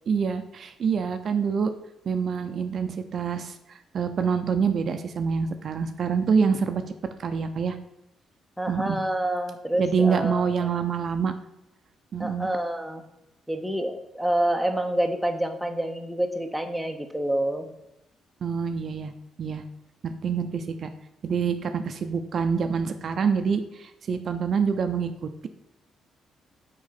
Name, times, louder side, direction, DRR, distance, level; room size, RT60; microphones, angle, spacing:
voice 1, 0.1-1.7 2.1-6.8 7.2-7.8 8.7-9.0 9.8-11.3 12.1-12.5 18.4-19.1 19.4-19.6 20.0-20.9 21.2-25.1, right 6 dB, 55° right, 8 dB, 0.6 m, -26 dB
voice 2, 8.6-10.7 12.2-13.0 13.5-17.7, right 1 dB, ahead, 4 dB, 0.9 m, -27 dB
6.2 x 4.7 x 5.8 m, 0.88 s
cardioid pair, 90°, 0 cm